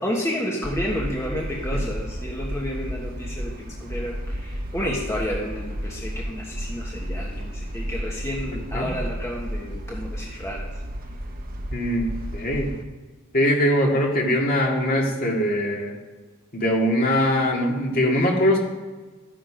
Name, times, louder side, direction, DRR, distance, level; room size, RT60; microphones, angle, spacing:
voice 1, 0.0-10.7, equal, 15° left, -3 dB, 1.4 m, -31 dB
sound 1, 0.6-12.8, equal, 40° right, 1.0 m, -32 dB
voice 2, 11.7-12.7 13.3-16.0 16.5-18.6, equal, 40° left, -1 dB, 2.3 m, -22 dB
14.0 x 9.4 x 5.2 m, 1.3 s
head